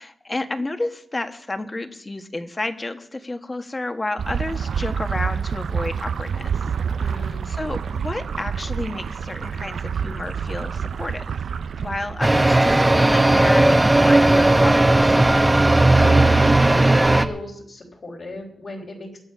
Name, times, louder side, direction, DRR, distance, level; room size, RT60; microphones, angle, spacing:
voice 1, 0.0-6.6 7.0-11.4 11.8-15.1, left 2 dB, 30° left, 7 dB, 1.5 m, -31 dB
sound 1, 4.2-12.8, right 7 dB, 80° right, 0.4 m, -28 dB
voice 2, 7.0-7.5 16.0-16.2 16.6-19.2, left 2 dB, 60° left, -1 dB, 3.8 m, -36 dB
sound 2, 12.2-17.3, right 2 dB, 20° right, 1.1 m, -15 dB
22.5 x 8.0 x 5.5 m, 0.72 s
cardioid pair, 55°, 0 cm